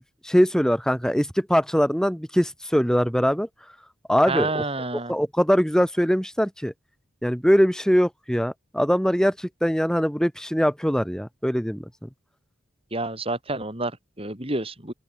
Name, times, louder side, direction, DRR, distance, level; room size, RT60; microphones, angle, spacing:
voice 1, 0.0-3.5 4.1-4.7 5.1-6.7 7.2-11.8, equal, 5° left, 3.8 m, -22 dB
voice 2, 4.3-5.1 12.9-14.9, right 2 dB, 30° right, 5.8 m, -29 dB
open air
head